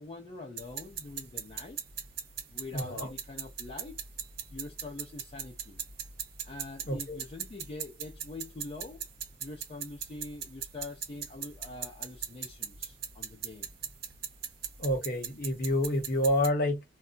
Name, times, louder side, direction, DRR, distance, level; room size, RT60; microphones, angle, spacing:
voice 1, 0.0-1.8 2.5-4.0 4.5-5.8 6.5-9.0 9.4-13.7, left 2 dB, 30° left, 0.5 m, -44 dB
sound 1, 0.6-16.5, right 8 dB, 55° right, 0.8 m, -41 dB
voice 2, 2.7-3.1 6.8-7.2 14.8-16.8, left 1 dB, 55° left, 1.0 m, -28 dB
2.2 x 2.0 x 3.8 m
head